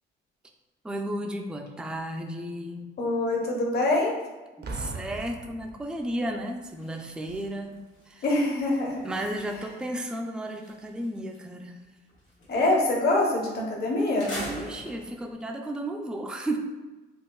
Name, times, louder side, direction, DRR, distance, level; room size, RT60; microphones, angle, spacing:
voice 1, 0.8-2.9 4.6-8.2 9.0-11.8 14.5-16.6, right 1 dB, 5° right, 2 dB, 0.3 m, -34 dB
voice 2, 3.0-4.1 8.2-9.1 12.5-14.3, left 2 dB, 55° left, -1 dB, 0.9 m, -24 dB
Boom, 4.6-6.4 7.3-7.5, right 3 dB, 55° right, 0.6 m, -39 dB
sound 1, 5.9-6.2 6.5-11.5 11.8-13.0 13.5-13.6 14.0-15.3, equal, 85° left, 1.4 m, -43 dB
4.1 x 2.4 x 2.3 m, 1.2 s
cardioid pair, 90°, 20 cm